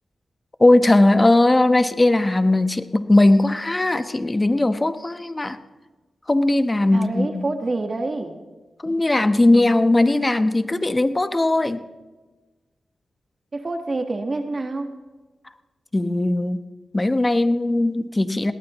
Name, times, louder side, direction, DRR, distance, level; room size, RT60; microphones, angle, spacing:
voice 1, 0.6-5.6 6.3-7.5 8.8-11.8 15.9-16.6 16.9-18.5, left 2 dB, 25° left, 10 dB, 1.0 m, -18 dB
voice 2, 6.9-8.3 13.5-14.9, right 2 dB, 40° right, 5 dB, 1.4 m, -27 dB
21.5 x 18.0 x 3.1 m, 1.2 s
cardioid pair, 70°, 0 cm